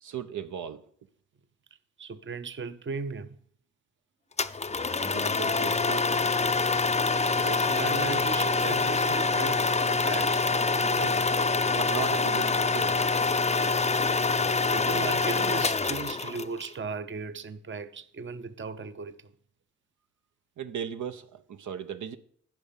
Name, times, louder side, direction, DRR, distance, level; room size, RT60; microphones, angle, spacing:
voice 1, 0.0-0.8 5.0-6.3 11.7-13.0 20.6-22.2, right 8 dB, 70° right, 0.8 m, -37 dB
voice 2, 2.0-3.4 7.4-10.5 10.7-11.4 14.7-19.2, right 4 dB, 40° right, 0.8 m, -37 dB
sound 1, 4.4-16.7, left 4 dB, 20° left, 0.6 m, -25 dB
10.5 x 5.4 x 7.3 m
cardioid pair, 65°, 31 cm